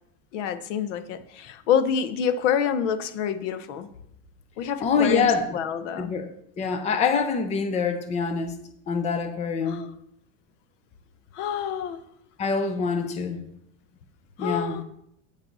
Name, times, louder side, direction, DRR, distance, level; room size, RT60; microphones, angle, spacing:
voice 1, 0.3-3.9 4.6-6.1 9.6-9.9 11.3-12.0 14.4-14.8, left 8 dB, 75° left, 11 dB, 1.1 m, -27 dB
voice 2, 4.8-5.6 6.0-6.3 6.6-8.6 8.9-9.8 12.4-13.4 14.4-14.8, left 5 dB, 20° left, 7 dB, 0.7 m, -25 dB
9.3 x 8.6 x 4.1 m, 0.75 s
supercardioid pair, 165°, 36 cm